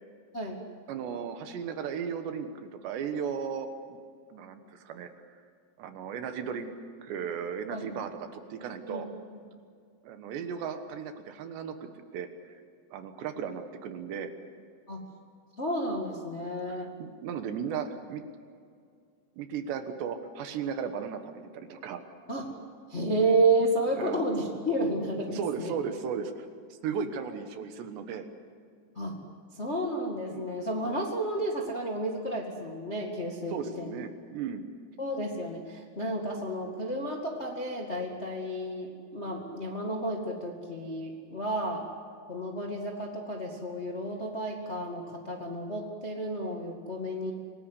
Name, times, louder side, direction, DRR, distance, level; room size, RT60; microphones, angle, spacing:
voice 1, 0.9-4.0 4.3-5.1 5.8-6.7 7.0-9.1 10.0-11.8 12.1-12.6 12.9-14.3 16.7-18.2 19.4-22.0 24.0-24.2 25.3-26.5 26.7-28.3 30.3-30.5 33.5-34.7, right 7 dB, 70° right, 7 dB, 3.3 m, -36 dB
voice 2, 15.6-16.9 22.3-22.5 22.9-25.7 28.9-29.2 29.5-34.0 35.0-41.9 42.3-47.3, right 1 dB, 75° left, 0 dB, 0.6 m, -31 dB
27.0 x 19.5 x 8.3 m, 2.2 s
omnidirectional pair, 5.5 m